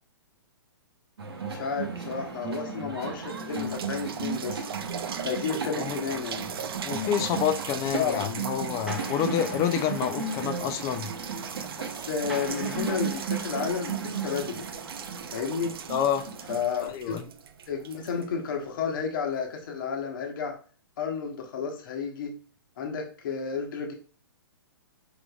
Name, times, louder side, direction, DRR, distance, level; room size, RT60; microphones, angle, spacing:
sound 1, 1.2-16.6, right 5 dB, 85° right, 1.0 m, -35 dB
voice 1, 1.4-4.6 5.2-6.5 7.9-8.2 11.8-14.7 15.3-15.8 16.5-17.2 17.7-20.6 21.0-22.3 22.8-23.9, left 6 dB, 55° left, 2 dB, 1.0 m, -32 dB
sound 2, 2.7-2.8 3.2-18.9 19.6-19.7, right 7 dB, 70° right, 0.5 m, -39 dB
voice 2, 6.8-11.1 15.9-16.2 16.9-17.2, left 9 dB, 25° left, 9 dB, 0.4 m, -28 dB
sound 3, 8.9-15.7, right 1 dB, 5° right, 0.8 m, -44 dB
4.9 x 3.7 x 2.3 m, 0.40 s
hypercardioid pair, 135°, 13 cm